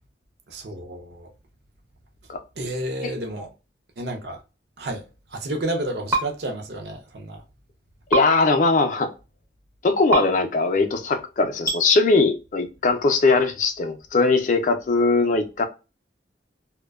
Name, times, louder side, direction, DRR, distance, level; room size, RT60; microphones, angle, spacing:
voice 1, 0.5-1.3 2.6-3.5 4.0-4.4 4.8-5.0 5.3-7.4, right 1 dB, 65° right, 0.6 m, -31 dB
sound 1, 6.1-6.2 8.1-8.2 10.1-10.2 11.6-11.8, right 2 dB, 15° right, 0.5 m, -21 dB
voice 2, 8.1-9.1 9.8-15.6, left 3 dB, 45° left, 0.4 m, -20 dB
2.5 x 2.1 x 2.2 m
head